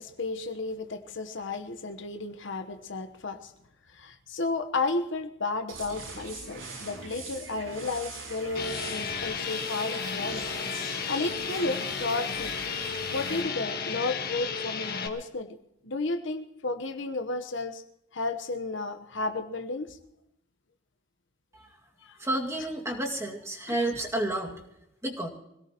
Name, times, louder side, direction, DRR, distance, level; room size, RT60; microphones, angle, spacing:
voice 1, 0.0-3.5 3.9-10.4 11.1-12.5 13.1-15.6 15.8-17.8 18.1-20.0 22.0-22.2 23.7-23.9, left 3 dB, 65° left, 7 dB, 1.1 m, -33 dB
sound 1, 5.7-13.4, right 3 dB, 90° right, 6.0 m, -42 dB
sound 2, 8.5-15.1, left 6 dB, 50° left, 1.4 m, -33 dB
voice 2, 22.2-24.5 25.0-25.3, right 1 dB, 15° right, 0 dB, 2.1 m, -30 dB
25.0 x 17.5 x 3.0 m, 0.82 s
head